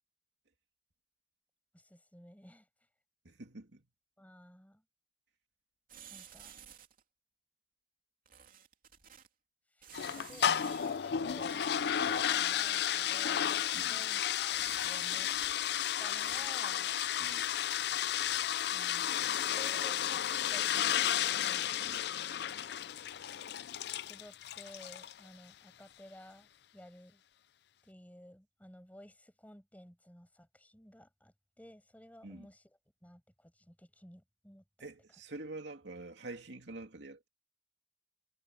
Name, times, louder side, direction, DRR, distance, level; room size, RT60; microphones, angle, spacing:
voice 1, 1.7-2.7 4.2-4.8 6.1-6.6 9.7-9.9 10.1-11.6 12.0-15.3 16.0-16.9 18.7-21.9 24.0-27.2 27.8-34.9, left 1 dB, 10° left, 6.1 m, -55 dB
voice 2, 3.2-3.8 13.7-14.0 17.2-17.5 21.8-22.0 32.2-32.5 34.8-37.3, right 2 dB, 85° right, 2.6 m, -46 dB
sound 1, 5.9-7.0 8.3-9.3 9.8-11.0 11.4-15.7 16.0-16.5, right 9 dB, 55° right, 3.0 m, -53 dB
sound 2, 9.9-25.2, left 10 dB, 65° left, 0.4 m, -33 dB
head